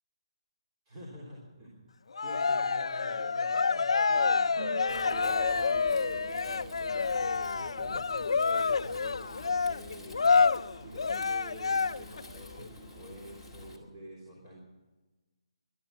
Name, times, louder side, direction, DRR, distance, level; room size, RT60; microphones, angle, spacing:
voice 1, 0.9-1.9 2.2-10.3 10.8-14.6, equal, 20° right, -4 dB, 3.5 m, -48 dB
Cheering, 2.1-12.2, left 5 dB, 80° left, 0.5 m, -28 dB
sound 1, 4.6-8.1, right 5 dB, 45° right, 0.8 m, -44 dB
Wind, 4.9-13.8, left 1 dB, 5° right, 2.1 m, -50 dB
20.5 x 12.0 x 5.8 m, 1.2 s
hypercardioid pair, 165°, 3 cm